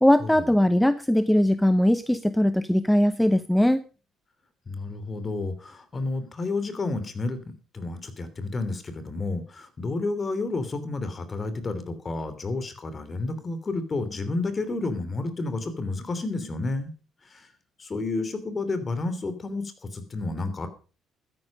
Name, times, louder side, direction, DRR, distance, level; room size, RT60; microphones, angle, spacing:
voice 1, 0.0-3.8, left 1 dB, 5° left, 13 dB, 0.8 m, -20 dB
voice 2, 4.7-16.9 17.3-17.4 17.8-20.7, left 3 dB, 35° left, 12 dB, 2.9 m, -31 dB
13.0 x 10.5 x 5.2 m, 0.36 s
supercardioid pair, 70°, 0 cm